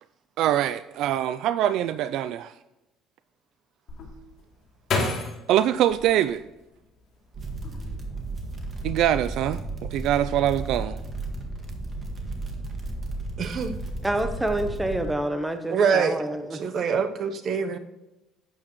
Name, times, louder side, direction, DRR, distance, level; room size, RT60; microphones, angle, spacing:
voice 1, 0.4-2.5 5.5-6.4 8.8-11.0, right 11 dB, 70° right, 0.3 m, -24 dB
sound 1, 3.9-7.0 7.5-8.2 8.6-9.0, left 3 dB, 45° left, 2.9 m, -31 dB
sound 2, 7.3-15.1, right 2 dB, 30° right, 1.8 m, -34 dB
voice 2, 13.4-13.8 15.7-16.2 16.5-17.8, right 6 dB, 45° right, 0.8 m, -24 dB
voice 3, 14.0-16.6, right 1 dB, 10° right, 0.9 m, -27 dB
11.5 x 8.6 x 3.1 m
cardioid pair, 135°, 0 cm